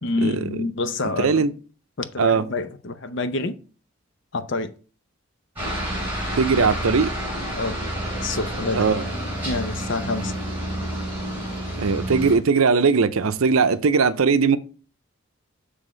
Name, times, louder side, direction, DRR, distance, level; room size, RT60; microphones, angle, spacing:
voice 1, 0.0-1.5 2.0-3.6 4.3-4.7 6.6-6.7 7.6-7.8 8.2-8.9 9.4-10.3, left 3 dB, 55° left, 0.6 m, -27 dB
voice 2, 1.0-1.5 2.2-2.4 6.4-7.1 8.7-9.0 11.8-14.6, right 5 dB, 80° right, 0.6 m, -19 dB
Aircraft, 5.6-12.4, right 1 dB, 10° right, 3.6 m, -29 dB
7.3 x 3.5 x 5.1 m
head